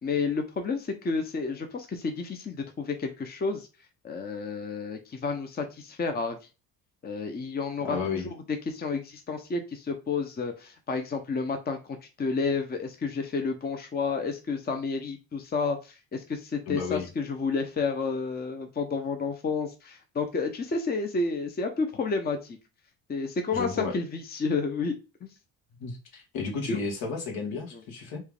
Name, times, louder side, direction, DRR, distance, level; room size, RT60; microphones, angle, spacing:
voice 1, 0.0-3.7 4.0-6.4 7.0-8.3 8.7-22.6 23.1-25.3 26.7-26.8 27.7-27.8, left 4 dB, 25° left, 6 dB, 0.8 m, -31 dB
voice 2, 7.8-8.3 16.7-17.1 23.5-23.9 25.8-28.2, left 5 dB, 70° left, 0 dB, 1.7 m, -32 dB
4.5 x 2.4 x 3.4 m, 0.30 s
supercardioid pair, 90°, 38 cm